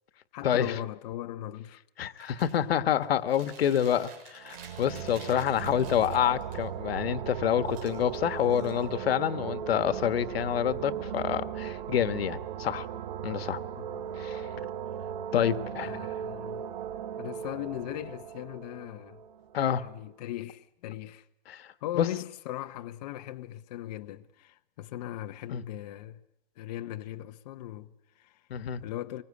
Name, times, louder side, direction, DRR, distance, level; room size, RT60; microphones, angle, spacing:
voice 1, 0.3-1.8 13.8-14.1 15.8-16.6 17.2-19.2 19.8-21.3 21.8-26.2 26.6-28.5 28.8-29.2, left 13 dB, 45° left, 1.0 m, -39 dB
voice 2, 2.0-12.9 13.2-13.6 14.2-14.4 15.3-15.9 19.5-19.8 21.5-21.7 22.0-22.1 25.5-25.6 28.5-28.8, left 9 dB, 90° left, 1.5 m, -27 dB
Chewing mastication, 2.2-2.6 3.0-6.6 7.6-9.2, right 5 dB, 30° right, 6.8 m, -51 dB
sound 1, 4.4-19.9, right 9 dB, 50° right, 1.5 m, -37 dB
25.0 x 22.5 x 9.7 m
supercardioid pair, 165°, 29 cm